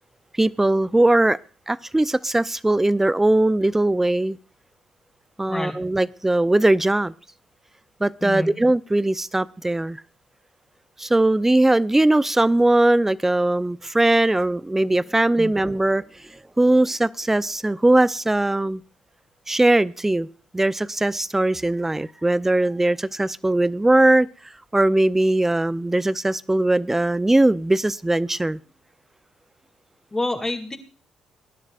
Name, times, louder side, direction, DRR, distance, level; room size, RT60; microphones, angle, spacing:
voice 1, 0.4-1.4 1.7-4.4 5.4-7.1 8.0-10.0 11.0-16.0 16.6-18.8 19.5-20.3 20.5-24.3 24.7-28.6, right 1 dB, 15° right, 0.7 m, -20 dB
voice 2, 8.2-8.5 15.4-15.5 30.1-30.8, left 2 dB, 20° left, 2.8 m, -27 dB
22.5 x 11.0 x 2.5 m
hypercardioid pair, 55°, 2 cm